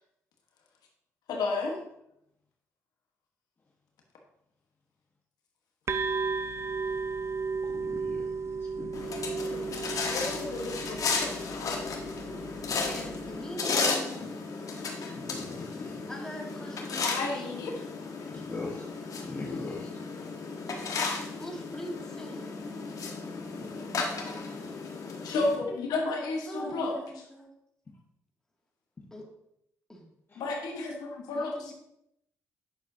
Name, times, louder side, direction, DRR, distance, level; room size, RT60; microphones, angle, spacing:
voice 1, 1.3-1.8 9.4-9.8 10.0-11.8 17.0-17.7 25.2-26.9 30.4-31.5, left 3 dB, 80° left, 1 dB, 1.2 m, -32 dB
sound 1, 5.9-13.4, right 4 dB, 45° right, 0.5 m, -35 dB
voice 2, 7.7-9.0 15.1-15.9 18.3-18.8 19.2-19.9 30.3-30.6, left 3 dB, 35° left, -3 dB, 1.3 m, -40 dB
sound 2, 8.9-25.6, left 4 dB, 60° left, 1.3 m, -34 dB
voice 3, 12.9-14.2 16.1-17.7 21.4-22.5 26.5-27.5 29.1-29.2 29.9-30.0 31.3-31.7, equal, 10° left, -1 dB, 2.3 m, -42 dB
9.2 x 6.5 x 2.8 m, 0.78 s
supercardioid pair, 60°, 7 cm